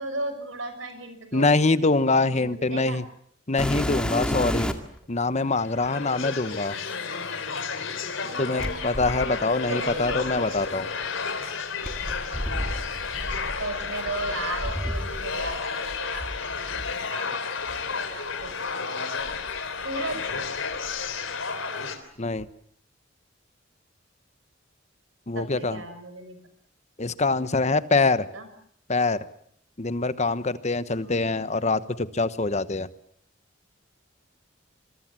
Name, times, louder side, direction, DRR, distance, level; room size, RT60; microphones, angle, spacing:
voice 1, 0.0-1.6 2.3-3.0 6.5-7.4 8.1-8.8 9.7-10.9 13.2-16.3 16.7-19.1 19.8-20.3 25.3-26.4 28.3-28.5, right 2 dB, 90° right, 9 dB, 6.1 m, -36 dB
voice 2, 1.3-3.0 3.5-4.7 5.1-6.8 8.4-10.9 22.2-22.5 25.3-25.8 27.0-28.3 28.9-29.2 29.8-32.9, left 3 dB, 35° left, 14 dB, 1.1 m, -24 dB
sound 1, 3.6-5.0 5.8-5.9 8.6-10.7 11.8-15.6 15.8-16.9 17.7-17.8 18.4-18.5 19.2-20.3 20.6-21.1 22.4-22.5, equal, 5° left, 2.1 m, -32 dB
sound 2, 5.5-22.0, left 5 dB, 85° left, 3.5 m, -32 dB
25.5 x 22.5 x 7.5 m, 0.67 s
head